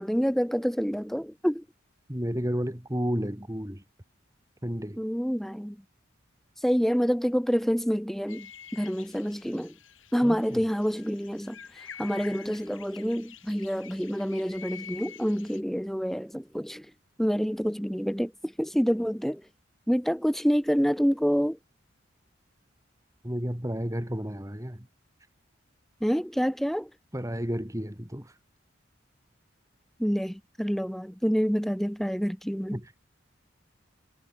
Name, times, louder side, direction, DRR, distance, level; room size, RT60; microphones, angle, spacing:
voice 1, 0.0-1.6 5.0-5.8 6.6-8.5 8.7-9.7 10.1-11.6 12.0-16.9 17.2-19.4 19.9-21.6 26.0-26.9 30.0-32.8, equal, ahead, 3.0 m, -27 dB
voice 2, 2.1-3.8 4.6-5.0 10.2-10.6 23.2-24.9 27.1-28.3 32.7-32.9, equal, 15° right, 2.7 m, -32 dB
sound 1, 8.3-15.6, left 8 dB, 80° left, 6.9 m, -48 dB
head